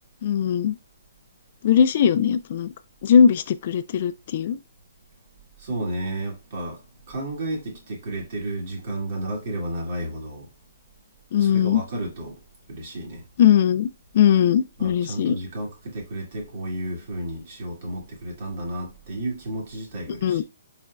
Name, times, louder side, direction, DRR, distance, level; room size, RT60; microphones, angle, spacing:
voice 1, 0.2-0.8 1.6-2.7 3.0-4.6 11.3-11.8 13.4-13.9 14.1-15.4 20.1-20.4, left 8 dB, 50° left, 0.3 m, -19 dB
voice 2, 5.6-6.8 7.1-10.5 11.4-12.4 12.7-13.2 14.8-20.4, right 1 dB, 50° right, 2.1 m, -32 dB
4.3 x 4.3 x 2.3 m
hypercardioid pair, 135°, 0 cm